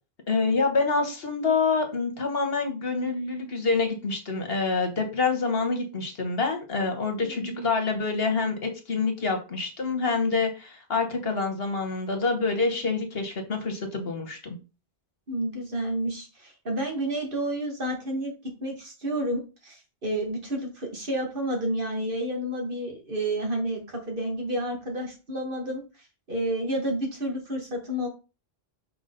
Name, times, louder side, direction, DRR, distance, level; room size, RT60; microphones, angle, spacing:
voice 1, 0.3-14.6, left 4 dB, 70° left, 5 dB, 1.5 m, -27 dB
voice 2, 7.3-7.7 15.3-18.3 18.6-25.8 26.3-28.1, right 1 dB, 55° right, 1 dB, 2.2 m, -30 dB
6.0 x 4.8 x 3.9 m, 0.31 s
omnidirectional pair, 1.1 m